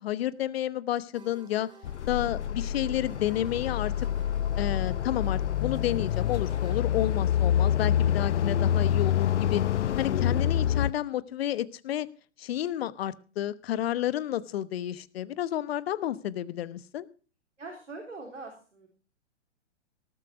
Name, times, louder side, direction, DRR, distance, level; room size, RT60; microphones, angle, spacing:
voice 1, 0.0-1.7 2.1-4.1 4.6-9.6 10.0-12.1 12.4-17.1, left 12 dB, 55° left, 17 dB, 1.1 m, -31 dB
sound 1, 1.1-6.8, right 4 dB, 10° right, 2.6 m, -53 dB
sound 2, 1.8-10.9, left 10 dB, 75° left, 0.7 m, -27 dB
voice 2, 17.6-18.9, right 3 dB, 90° right, 2 dB, 4.1 m, -43 dB
18.5 x 7.8 x 6.0 m, 0.38 s
hypercardioid pair, 120°, 35 cm